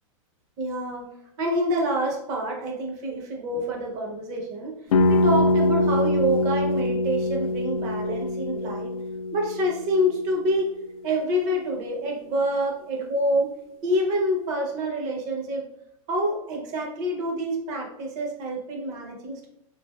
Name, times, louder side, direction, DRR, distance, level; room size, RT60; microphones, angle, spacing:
voice 1, 0.6-1.1 1.4-4.8 5.1-9.0 9.3-10.7 11.0-13.5 13.8-15.6 16.1-19.5, equal, 40° right, 1 dB, 0.7 m, -27 dB
sound 1, 4.9-10.7, left 2 dB, 75° left, 0.4 m, -24 dB
3.2 x 2.5 x 2.2 m, 0.76 s
hypercardioid pair, 135°, 18 cm